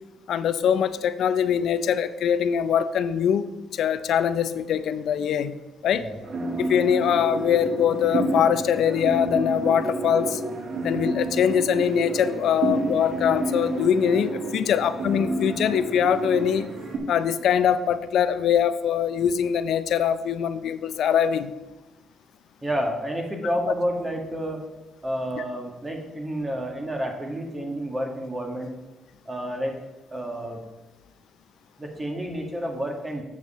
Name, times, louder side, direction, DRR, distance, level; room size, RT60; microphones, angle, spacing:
voice 1, 0.3-5.6 5.8-6.1 6.6-10.4 10.8-16.7 17.1-21.5, left 8 dB, 70° left, 13 dB, 0.5 m, -23 dB
sound 1, 6.2-17.0, right 2 dB, 65° right, 2.3 m, -29 dB
voice 2, 22.6-24.6 25.0-28.7 29.3-29.7 30.1-30.6 31.8-33.2, equal, 20° right, 2 dB, 1.7 m, -30 dB
8.1 x 7.4 x 4.2 m, 1.1 s
cardioid pair, 90°, 0 cm